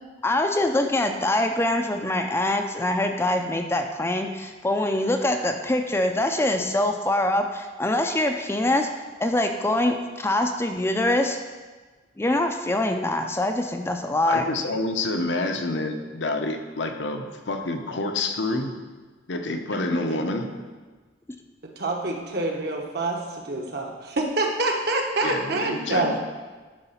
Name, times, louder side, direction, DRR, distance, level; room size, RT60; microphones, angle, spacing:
voice 1, 0.2-8.9 9.2-11.4 12.2-14.5, left 1 dB, 15° left, 5 dB, 0.4 m, -24 dB
voice 2, 14.3-18.7 19.3-20.5 25.2-26.2, left 2 dB, 75° left, 5 dB, 0.8 m, -28 dB
voice 3, 21.6-26.2, right 2 dB, 55° right, 1 dB, 1.1 m, -27 dB
11.0 x 3.9 x 5.6 m, 1.3 s
head